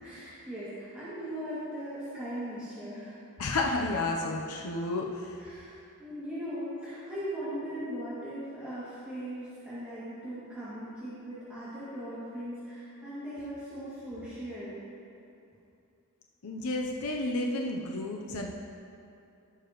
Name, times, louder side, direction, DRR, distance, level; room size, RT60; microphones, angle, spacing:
voice 1, 0.0-3.2 5.4-14.7, equal, 5° right, -14 dB, 2.2 m, -39 dB
voice 2, 3.4-5.4 16.4-18.5, left 2 dB, 75° left, 0 dB, 0.7 m, -31 dB
16.5 x 6.8 x 3.1 m, 2.7 s
head